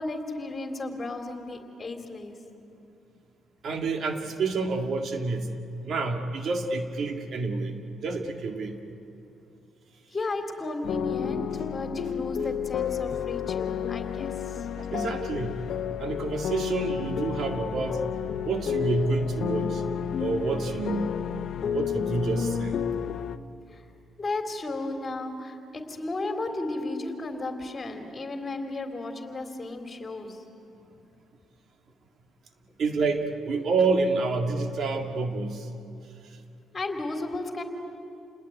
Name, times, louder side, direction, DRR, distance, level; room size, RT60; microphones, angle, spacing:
voice 1, 0.0-2.4 10.1-14.6 23.7-23.8 24.2-30.4 36.7-37.6, left 2 dB, 30° left, 5 dB, 3.4 m, -34 dB
voice 2, 3.6-5.6 5.8-8.8 14.8-15.6 16.0-18.0 18.5-19.8 20.2-21.1 21.7-23.0 32.8-35.7 36.2-36.3, right 3 dB, 60° right, 5 dB, 2.1 m, -28 dB
sound 1, 10.8-23.4, left 9 dB, 65° left, 0.9 m, -31 dB
29.0 x 20.5 x 9.3 m, 2.6 s
cardioid pair, 90°, 0 cm